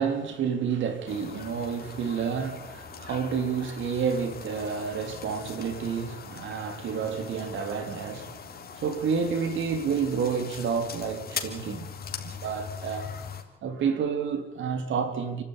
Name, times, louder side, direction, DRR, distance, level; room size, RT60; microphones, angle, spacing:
voice 1, 0.0-13.2 13.6-15.4, right 6 dB, 75° right, 3.6 m, -30 dB
sound 1, 1.1-13.4, left 6 dB, 50° left, 3.6 m, -41 dB
29.0 x 12.0 x 9.9 m
cardioid pair, 90°, 20 cm